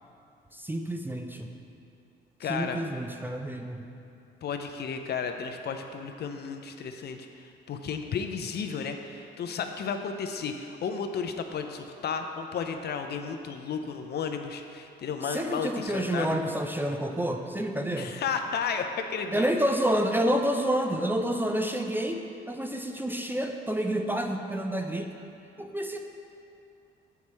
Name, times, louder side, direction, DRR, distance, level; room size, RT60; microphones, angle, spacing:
voice 1, 0.5-1.5 2.5-3.8 15.2-18.1 19.3-25.1 25.6-26.0, right 1 dB, 10° right, 4 dB, 0.4 m, -29 dB
voice 2, 2.4-2.8 4.4-16.4 18.0-19.5, left 6 dB, 55° left, 6 dB, 0.5 m, -33 dB
7.1 x 4.7 x 4.2 m, 2.7 s
cardioid pair, 90°, 20 cm